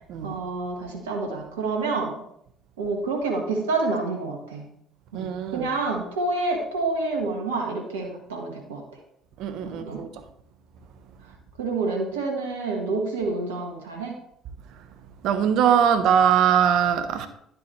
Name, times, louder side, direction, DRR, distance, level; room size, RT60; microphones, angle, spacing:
voice 1, 0.2-2.2 2.8-4.7 5.1-8.8 9.6-10.0 11.6-14.1, right 3 dB, 80° right, 1.5 m, -28 dB
voice 2, 5.1-5.7 9.4-10.1 15.2-17.3, right 8 dB, 65° right, 1.0 m, -21 dB
10.5 x 7.6 x 3.2 m
hypercardioid pair, 60°, 0 cm